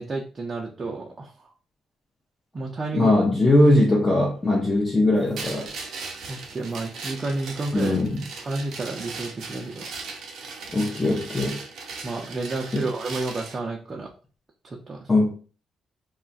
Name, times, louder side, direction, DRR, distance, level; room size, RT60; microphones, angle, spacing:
voice 1, 0.0-1.5 2.5-3.1 6.3-8.0 8.4-9.9 12.0-14.1 14.6-15.1, right 2 dB, 35° right, 0.6 m, -31 dB
voice 2, 2.9-5.7 7.7-8.2 10.7-11.6 12.7-12.8 15.1-15.3, left 1 dB, 20° left, 0.7 m, -20 dB
sound 1, 5.3-13.6, right 4 dB, 75° right, 0.8 m, -38 dB
2.4 x 2.1 x 3.9 m
cardioid pair, 90°, 0 cm